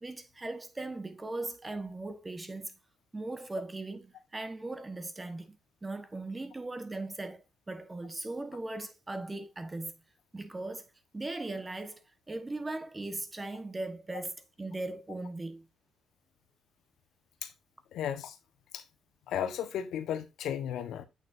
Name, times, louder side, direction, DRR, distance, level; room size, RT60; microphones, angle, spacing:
voice 1, 0.0-2.8 3.1-5.6 5.8-9.9 10.3-10.9 11.1-12.0 12.3-15.6, right 2 dB, 20° right, 1.3 m, -38 dB
voice 2, 17.9-18.4 18.7-18.8 19.3-21.0, left 9 dB, 80° left, 1.3 m, -34 dB
8.3 x 6.6 x 2.7 m
cardioid pair, 90°, 0 cm